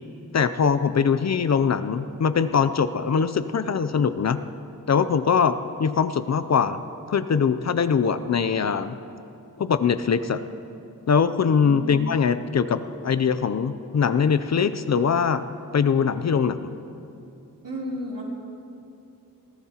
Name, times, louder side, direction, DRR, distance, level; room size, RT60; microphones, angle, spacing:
voice 1, 0.3-4.4 4.9-6.8 7.1-9.0 9.6-10.4 11.1-15.5 15.7-16.7, left 6 dB, 50° left, 12 dB, 0.5 m, -22 dB
voice 2, 11.6-12.1 17.6-18.2, left 2 dB, 65° right, -5 dB, 3.4 m, -32 dB
21.5 x 15.0 x 2.9 m, 2.7 s
wide cardioid pair, 90°, 35 cm